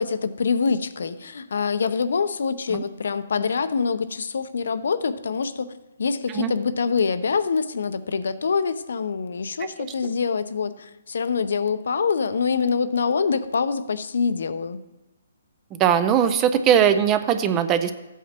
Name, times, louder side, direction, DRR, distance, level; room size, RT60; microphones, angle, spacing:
voice 1, 0.0-14.8, left 5 dB, 65° left, 13 dB, 0.6 m, -25 dB
voice 2, 15.7-17.9, right 9 dB, 15° right, 10 dB, 0.3 m, -20 dB
14.5 x 8.2 x 2.9 m, 1.0 s
hypercardioid pair, 175°, 0 cm